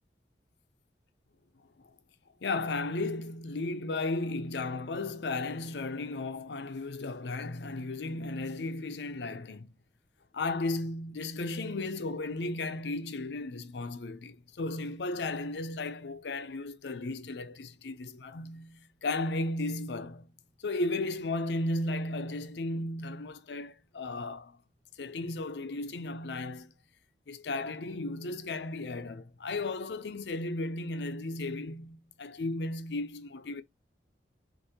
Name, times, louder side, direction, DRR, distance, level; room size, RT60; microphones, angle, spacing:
voice 1, 2.4-9.7 10.3-20.3 20.6-24.6 25.0-26.7 27.3-33.6, left 2 dB, 80° left, 0.6 m, -35 dB
6.4 x 2.6 x 2.8 m
head